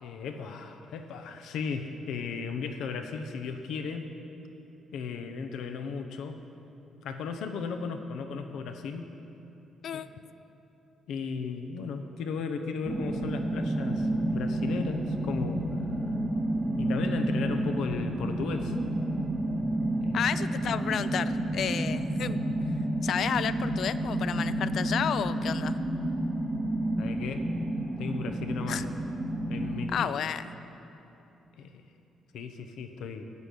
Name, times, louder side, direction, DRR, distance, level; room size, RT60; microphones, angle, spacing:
voice 1, 0.0-4.1 4.9-6.4 7.0-9.1 9.9-10.0 11.1-15.6 15.9-16.0 16.8-18.8 20.0-20.3 22.1-22.4 27.0-27.5 28.0-28.8 29.5-30.1 31.6-31.8 32.3-33.2, left 5 dB, 80° left, 6 dB, 0.8 m, -35 dB
sound 1, 12.8-29.9, right 1 dB, 20° right, 1.0 m, -30 dB
voice 2, 20.1-22.4 23.0-25.8 28.7-28.9 29.9-30.4, left 8 dB, 65° left, 13 dB, 0.3 m, -31 dB
11.0 x 6.2 x 8.3 m, 3.0 s
cardioid pair, 90°, 0 cm